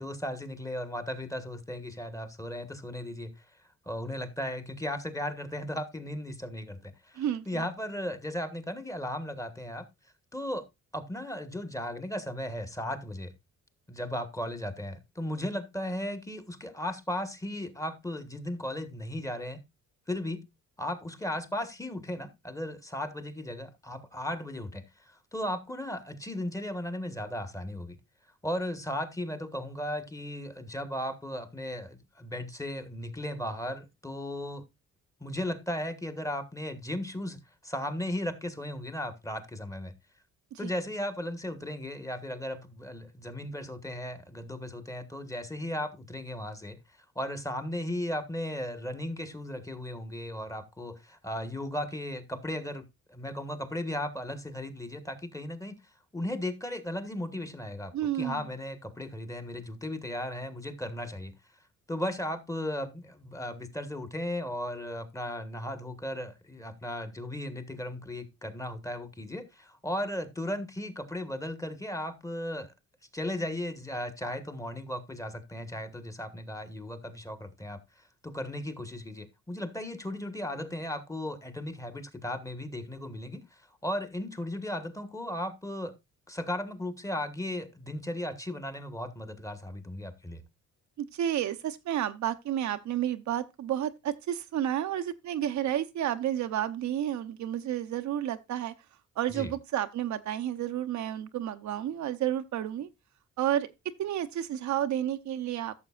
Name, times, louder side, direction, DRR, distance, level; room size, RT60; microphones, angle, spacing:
voice 1, 0.0-3.4 3.8-9.9 10.3-10.6 10.9-13.3 13.9-19.6 20.1-20.4 20.8-28.0 28.4-34.6 35.2-39.9 40.6-46.8 47.1-55.7 56.1-61.3 61.9-72.7 73.1-85.9 86.3-90.4 99.3-99.5, left 1 dB, 10° left, 1.3 m, -36 dB
voice 2, 7.2-7.6 40.5-40.7 57.9-58.4 91.0-98.7 99.2-102.9 103.4-103.7 104.0-105.8, right 11 dB, 70° right, 0.8 m, -31 dB
13.5 x 6.6 x 2.4 m
cardioid pair, 90°, 30 cm